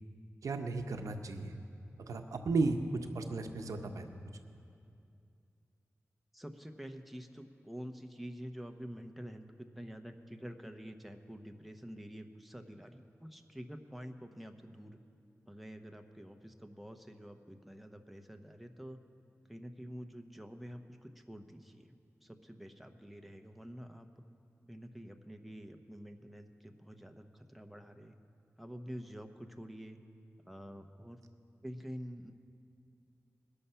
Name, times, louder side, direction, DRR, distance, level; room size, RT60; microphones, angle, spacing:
voice 1, 0.4-1.6 2.0-4.1, right 3 dB, 90° right, 6 dB, 0.7 m, -34 dB
voice 2, 6.3-15.0 15.5-19.0 19.5-22.0 22.2-24.1 24.7-28.1 28.6-30.0 30.5-31.2 31.6-32.3, equal, ahead, 5 dB, 0.8 m, -48 dB
21.0 x 6.9 x 5.6 m, 2.5 s
wide cardioid pair, 65°, 5 cm